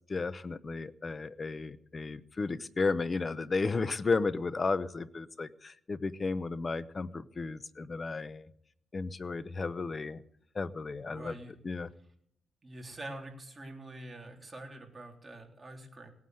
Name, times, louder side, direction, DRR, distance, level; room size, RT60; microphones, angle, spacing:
voice 1, 0.1-8.5 8.9-10.2 10.5-11.3 11.6-11.9, left 4 dB, 30° left, 15 dB, 0.8 m, -33 dB
voice 2, 11.1-11.5 12.6-16.1, right 1 dB, 20° right, 2 dB, 3.5 m, -45 dB
18.5 x 9.4 x 7.9 m, 0.70 s
cardioid pair, 120°, 0 cm